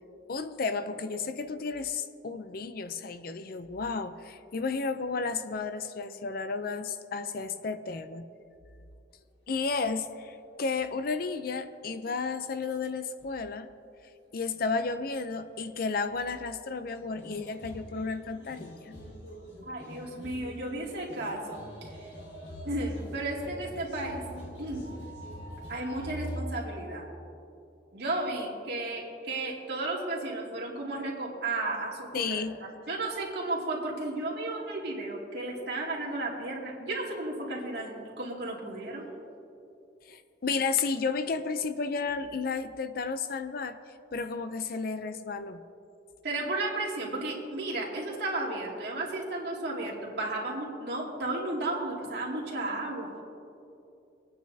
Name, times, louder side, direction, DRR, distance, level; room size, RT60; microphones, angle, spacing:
voice 1, 0.3-8.2 9.5-13.7 14.3-18.9 32.1-32.6 40.1-43.8 44.1-45.6, left 4 dB, 50° left, 10 dB, 0.5 m, -32 dB
sound 1, 13.2-13.3 14.8-15.0 15.3-15.4 17.1-26.4, equal, 70° left, 1.9 m, -43 dB
voice 2, 19.7-22.1 22.7-24.2 24.6-24.8 25.7-27.1 27.9-32.4 32.9-39.1 46.2-53.1, right 2 dB, 60° right, -4 dB, 2.5 m, -33 dB
25.5 x 9.3 x 2.8 m, 2.7 s
head